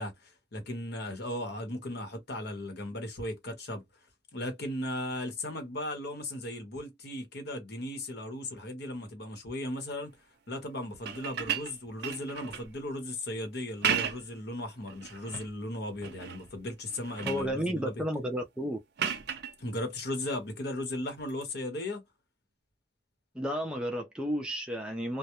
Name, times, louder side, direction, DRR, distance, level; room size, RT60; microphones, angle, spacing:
voice 1, 0.0-3.8 4.3-10.2 10.5-18.0 19.6-22.0, left 1 dB, 55° left, 0.9 m, -37 dB
sound 1, 10.9-12.7 13.6-14.4 14.9-15.5 16.0-16.5 16.8-17.5 19.0-19.5 21.3-21.4, right 8 dB, 60° right, 0.6 m, -34 dB
voice 2, 17.3-18.8 23.3-25.2, equal, 5° right, 0.4 m, -32 dB
2.3 x 2.0 x 2.8 m
head